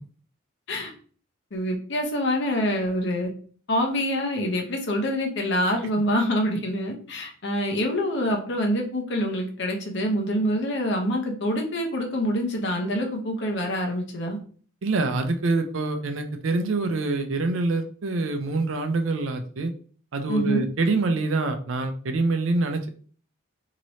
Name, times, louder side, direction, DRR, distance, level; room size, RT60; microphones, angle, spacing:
voice 1, 1.5-3.3 3.7-14.4 20.3-20.7, equal, 60° left, 2 dB, 0.8 m, -26 dB
voice 2, 14.8-19.7 20.1-22.9, right 3 dB, 70° right, 6 dB, 0.5 m, -25 dB
3.1 x 2.9 x 2.7 m, 0.43 s
head